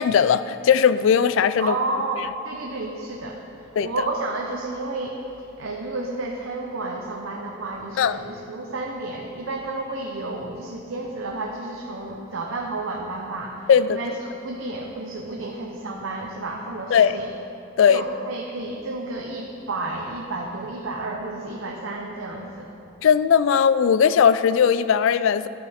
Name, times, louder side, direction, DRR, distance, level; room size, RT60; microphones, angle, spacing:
voice 1, 0.0-1.8 3.8-3.9 8.0-8.2 13.7-14.0 16.9-17.2 17.8-18.0 23.0-25.5, left 7 dB, 70° left, 14 dB, 0.3 m, -18 dB
voice 2, 1.6-5.2 5.6-17.3 17.8-22.7, right 2 dB, 75° right, 0 dB, 0.8 m, -31 dB
12.0 x 6.5 x 4.2 m, 2.9 s
head